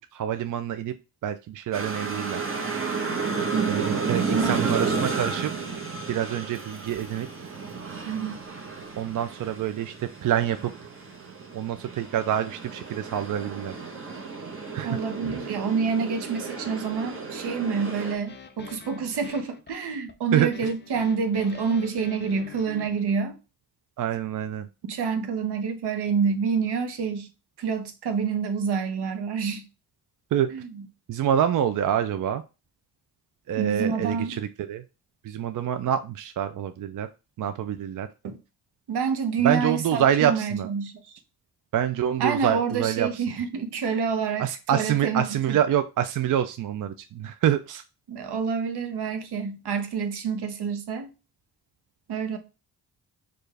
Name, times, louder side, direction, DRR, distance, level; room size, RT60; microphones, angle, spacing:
voice 1, 0.1-0.9 1.2-2.4 3.7-5.5 6.1-7.3 9.0-10.7 11.5-13.7 14.7-15.0 20.3-20.5 24.0-24.7 30.3-30.5 31.1-32.4 33.5-34.8 35.2-37.1 37.4-38.1 39.4-40.7 41.7-43.2 44.4-47.8, right 10 dB, 50° right, 0.4 m, -26 dB
sound 1, 1.7-18.1, right 4 dB, 30° right, 1.1 m, -32 dB
voice 2, 4.1-4.5 8.0-8.3 14.8-23.4 24.8-27.3 27.6-29.6 30.5-30.9 33.6-34.4 38.2-38.4 38.9-40.9 42.2-45.6 48.1-51.1 52.1-52.4, right 6 dB, 70° right, 0.9 m, -27 dB
sound 2, 18.3-23.1, left 6 dB, 25° left, 0.5 m, -45 dB
4.5 x 2.5 x 3.2 m
cardioid pair, 65°, 41 cm